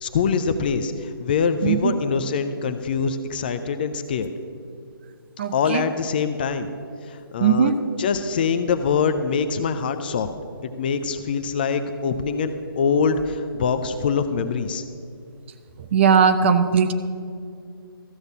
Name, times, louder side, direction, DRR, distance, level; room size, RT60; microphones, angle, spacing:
voice 1, 0.0-4.3 5.5-6.7 7.1-10.3 10.8-14.8, left 5 dB, 25° left, 9 dB, 0.4 m, -24 dB
voice 2, 1.6-1.9 5.4-5.9 7.4-7.8 15.8-16.9, right 6 dB, 30° right, 10 dB, 0.5 m, -19 dB
14.0 x 6.5 x 7.1 m, 2.4 s
figure-of-eight pair, 145°, 13 cm